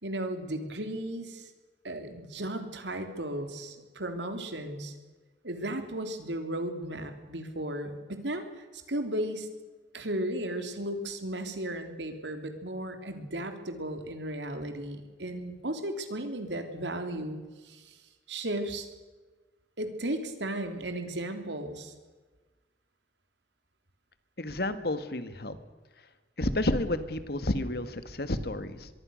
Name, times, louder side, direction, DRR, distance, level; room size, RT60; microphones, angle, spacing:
voice 1, 0.0-1.5 1.8-4.9 5.4-8.4 8.7-9.5 9.9-17.4 17.6-18.0 18.3-18.9 19.8-21.9, right 1 dB, 85° right, 7 dB, 3.4 m, -35 dB
voice 2, 24.4-25.6 26.4-28.9, left 1 dB, 60° left, 11 dB, 1.8 m, -30 dB
24.5 x 22.5 x 6.5 m, 1.3 s
head